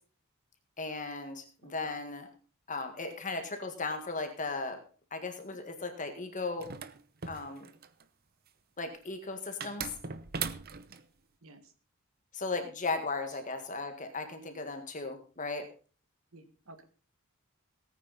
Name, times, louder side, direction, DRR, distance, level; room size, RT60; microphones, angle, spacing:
voice 1, 0.8-2.3 2.7-4.8 5.1-6.7 7.3-7.7 8.8-9.9 12.3-15.7, left 3 dB, 35° left, 6 dB, 1.7 m, -36 dB
voice 2, 1.6-1.9 11.4-11.6 16.3-16.8, right 2 dB, 75° right, 9 dB, 1.8 m, -53 dB
sound 1, 6.6-8.0 9.6-11.0, right 6 dB, 45° right, 0.8 m, -39 dB
18.0 x 9.3 x 4.1 m, 0.38 s
head